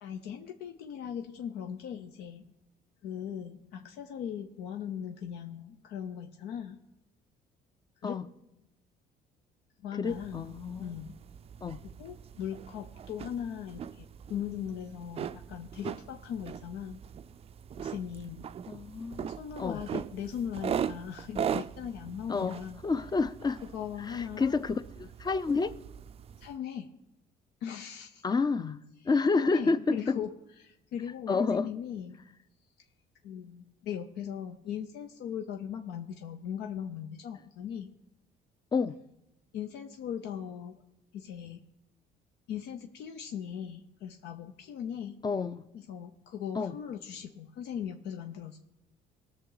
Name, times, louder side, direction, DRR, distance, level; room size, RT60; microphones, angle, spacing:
voice 1, 0.0-2.5 3.0-6.8 8.0-8.2 9.8-10.5 10.8-11.2 12.0-17.0 17.8-18.4 19.3-22.8 23.7-24.6 26.4-26.9 27.6-28.2 29.3-30.3 30.6-32.2 33.2-37.9 39.5-40.8 41.1-41.6 42.5-45.2 45.7-48.6, left 8 dB, 80° left, 0.8 m, -39 dB
voice 2, 10.0-10.9 11.6-11.8 18.7-19.3 19.6-19.8 22.3-22.6 22.8-23.6 24.1-25.7 28.2-28.8 29.0-30.2 31.3-31.7 38.7-39.0 45.2-45.6 46.5-46.8, left 4 dB, 25° left, 0.5 m, -29 dB
sound 1, 10.1-26.6, right 8 dB, 35° right, 0.4 m, -40 dB
19.5 x 6.7 x 4.0 m
cardioid pair, 110°, 17 cm